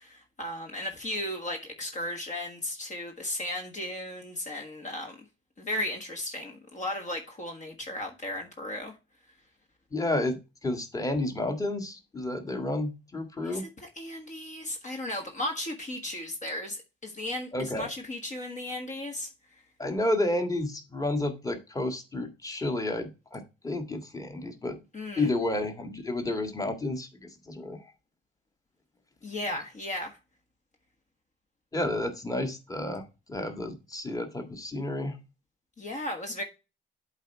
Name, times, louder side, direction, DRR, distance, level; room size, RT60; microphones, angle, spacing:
voice 1, 0.0-5.2 5.6-8.9 13.4-19.3 24.9-25.3 29.2-30.2 35.8-36.4, left 1 dB, 40° left, 1.5 m, -35 dB
voice 2, 9.9-13.7 17.5-17.9 19.8-24.8 25.2-27.1 27.5-27.8 31.7-35.1, left 2 dB, 15° left, 1.8 m, -31 dB
8.0 x 4.2 x 4.4 m
cardioid pair, 90°, 20 cm